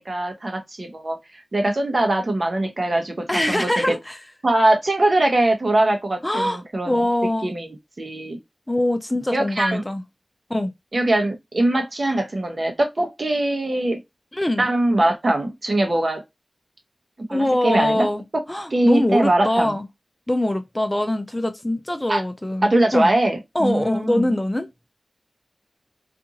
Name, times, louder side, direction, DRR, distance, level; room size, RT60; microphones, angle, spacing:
voice 1, 0.0-4.0 4.4-7.0 7.4-8.4 9.3-9.8 10.9-14.0 14.6-16.2 17.3-18.1 18.7-19.8 22.1-22.2 22.6-24.3, right 1 dB, 55° right, 0.9 m, -22 dB
voice 2, 3.3-4.2 6.2-6.6 6.9-7.5 8.7-10.0 10.5-10.7 14.3-14.7 17.3-18.2 18.5-19.8 20.3-23.1 23.5-24.7, left 1 dB, 20° left, 0.5 m, -23 dB
2.5 x 2.5 x 2.7 m
cardioid pair, 45°, 0 cm